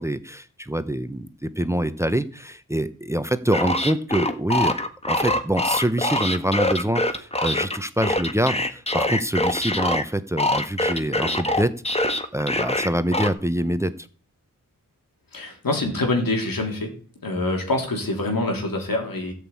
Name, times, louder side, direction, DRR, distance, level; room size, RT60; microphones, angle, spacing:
voice 1, 0.0-4.8 5.1-14.1, right 1 dB, 10° right, 12 dB, 0.9 m, -25 dB
sound 1, 3.5-10.0 10.4-13.3, left 1 dB, 20° left, 1.5 m, -24 dB
voice 2, 15.3-16.9 17.2-19.3, left 2 dB, 80° left, 2 dB, 3.6 m, -25 dB
13.5 x 6.3 x 8.5 m, 0.41 s
wide cardioid pair, 60°, 34 cm